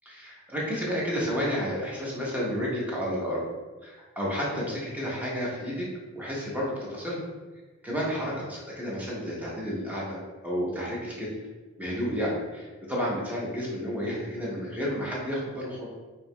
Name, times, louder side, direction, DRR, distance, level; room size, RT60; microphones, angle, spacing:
voice 1, 0.1-3.4 3.8-5.9 6.1-7.2 7.8-11.3 11.8-15.9, equal, 10° right, -5 dB, 0.8 m, -31 dB
4.6 x 2.8 x 2.2 m, 1.3 s
head